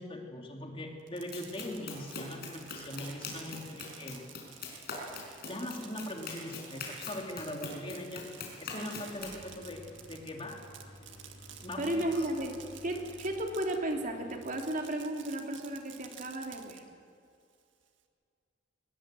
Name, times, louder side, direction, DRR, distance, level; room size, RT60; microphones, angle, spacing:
voice 1, 0.0-4.2 5.4-8.3 8.6-10.6 11.6-12.2, left 1 dB, 30° left, 2 dB, 2.8 m, -41 dB
Fireworks, 1.0-13.9 14.3-16.8, right 9 dB, 85° right, 1.9 m, -52 dB
Run, 1.3-9.4, left 4 dB, 60° left, 4.9 m, -43 dB
sound 1, 9.1-14.4, left 1 dB, 80° left, 2.5 m, -53 dB
voice 2, 11.8-12.5 12.8-16.8, right 1 dB, 45° right, 2 dB, 2.9 m, -34 dB
21.5 x 20.0 x 7.6 m, 2.3 s
head